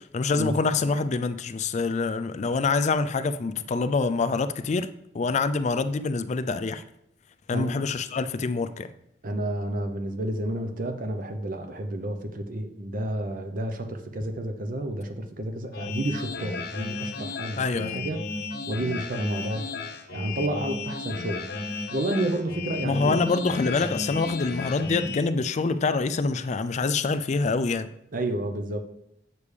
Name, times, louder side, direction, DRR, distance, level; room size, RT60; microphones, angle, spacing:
voice 1, 0.0-6.8 7.5-8.9 17.6-18.0 22.8-27.9, left 4 dB, 40° left, 0.4 m, -26 dB
voice 2, 9.2-18.2 18.7-19.8 20.1-23.2 28.1-28.8, right 1 dB, 50° right, 0.7 m, -30 dB
sound 1, 15.7-25.2, left 3 dB, 60° left, 0.9 m, -34 dB
8.3 x 6.8 x 3.3 m
head